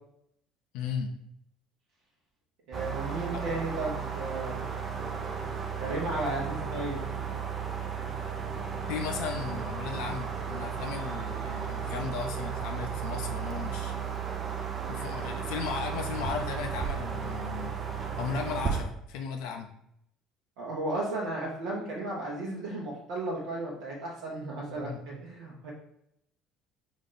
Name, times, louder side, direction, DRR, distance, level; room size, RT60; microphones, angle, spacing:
voice 1, 0.7-1.1 3.3-3.5 8.9-14.0 14.9-17.7 18.2-19.7 24.7-25.0, left 6 dB, 70° left, 3 dB, 0.4 m, -36 dB
sound 1, 2.7-18.8, right 6 dB, 40° right, 0.6 m, -34 dB
voice 2, 2.7-4.7 5.8-7.4 20.6-25.7, right 2 dB, 70° right, -4 dB, 0.8 m, -34 dB
4.0 x 2.5 x 3.8 m, 0.75 s
hypercardioid pair, 60°, 0 cm